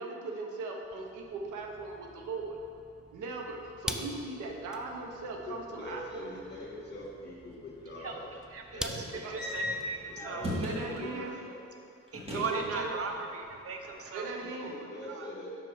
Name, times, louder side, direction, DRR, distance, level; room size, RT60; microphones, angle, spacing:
voice 1, 0.0-2.6 3.1-6.0 9.2-9.3 10.6-11.3 12.3-12.9 14.1-14.7, right 3 dB, 80° right, 1 dB, 0.9 m, -38 dB
sound 1, 0.8-11.3, equal, ahead, 0.3 m, -46 dB
voice 2, 5.5-8.3 8.7-10.7 11.0-11.6 14.4-15.6, left 1 dB, 35° left, -3 dB, 1.7 m, -44 dB
voice 3, 7.9-10.4 10.9-11.3 12.1-14.3 14.6-15.3, right 4 dB, 50° right, 4 dB, 0.6 m, -39 dB
sound 2, 9.4-11.1 12.1-13.2 13.4-14.3, left 1 dB, 20° right, 1.7 m, -37 dB
5.8 x 4.6 x 4.9 m, 2.4 s
cardioid pair, 90°, 30 cm